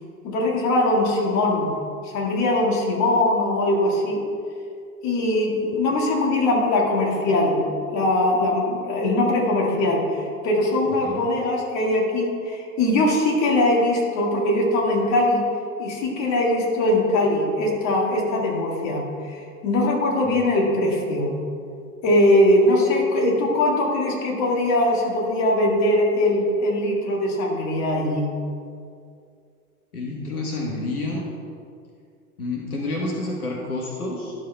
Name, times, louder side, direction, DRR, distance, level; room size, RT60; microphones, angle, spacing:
voice 1, 0.2-1.7 2.0-4.2 5.0-15.4 15.8-21.4 22.0-28.3, left 1 dB, 40° left, -1 dB, 1.8 m, -21 dB
voice 2, 29.9-31.3 32.4-34.3, left 2 dB, 80° left, -1 dB, 1.2 m, -29 dB
12.0 x 6.5 x 2.2 m, 2.3 s
figure-of-eight pair, 90°, 44 cm